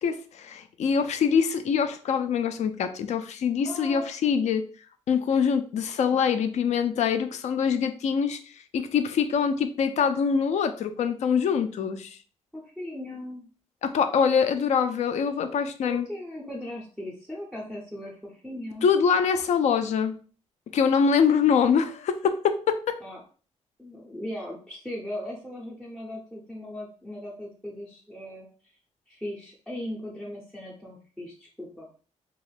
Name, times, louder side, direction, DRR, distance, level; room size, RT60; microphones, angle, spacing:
voice 1, 0.0-4.6 5.1-8.4 8.7-12.2 13.8-16.1 18.8-20.1 20.7-23.0, left 6 dB, 65° left, 9 dB, 0.4 m, -24 dB
voice 2, 3.6-4.1 6.1-6.2 12.5-13.5 15.8-18.9 23.0-23.2 23.8-28.5 29.1-31.9, left 1 dB, ahead, -5 dB, 0.5 m, -38 dB
2.9 x 2.3 x 3.2 m, 0.40 s
wide cardioid pair, 175°, 13 cm